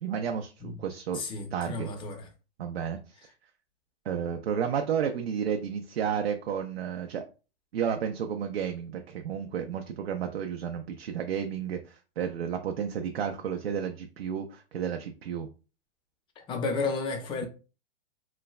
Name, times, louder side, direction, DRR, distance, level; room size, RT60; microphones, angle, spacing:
voice 1, 0.0-1.2 1.5-1.9 2.6-3.3 4.1-7.2 7.7-15.5, right 8 dB, 90° right, 0.5 m, -32 dB
voice 2, 1.1-2.3 16.4-17.5, left 4 dB, 15° left, 0.5 m, -32 dB
3.1 x 2.1 x 2.3 m
hypercardioid pair, 125°, 30 cm